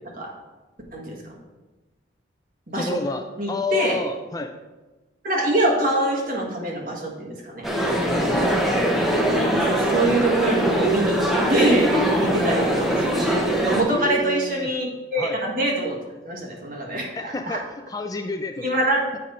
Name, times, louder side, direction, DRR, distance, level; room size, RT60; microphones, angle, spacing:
voice 1, 0.9-1.3 2.7-3.0 3.4-4.0 5.2-7.7 9.5-13.3 13.6-16.0 16.2-17.6 18.6-19.0, right 1 dB, 50° right, -1 dB, 1.4 m, -24 dB
voice 2, 2.7-3.2 3.5-4.5 8.1-8.5 9.4-9.6 12.2-12.4 13.9-14.7 15.2-15.4 17.2-17.6 17.9-18.7, left 2 dB, 20° left, 6 dB, 0.3 m, -29 dB
sound 1, 7.6-13.8, right 1 dB, ahead, 0.8 m, -22 dB
7.5 x 5.1 x 4.1 m, 1.2 s
head